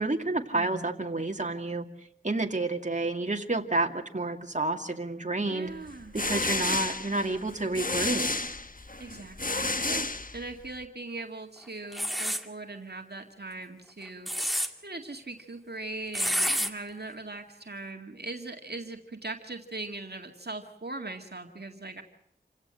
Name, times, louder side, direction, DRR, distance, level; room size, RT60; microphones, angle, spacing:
voice 1, 0.0-1.9 2.2-5.7 6.1-8.3, right 2 dB, 45° right, 3 dB, 2.4 m, -29 dB
voice 2, 0.5-1.0 5.5-6.2 9.0-14.5 14.8-22.0, right 2 dB, 65° right, 3 dB, 2.0 m, -40 dB
sound 1, 5.9-10.8, left 2 dB, 50° left, 1.3 m, -31 dB
sound 2, 11.9-12.4 14.0-14.7 16.1-16.7, equal, ahead, 2.2 m, -28 dB
28.0 x 16.5 x 7.9 m, 0.77 s
wide cardioid pair, 40°, 18 cm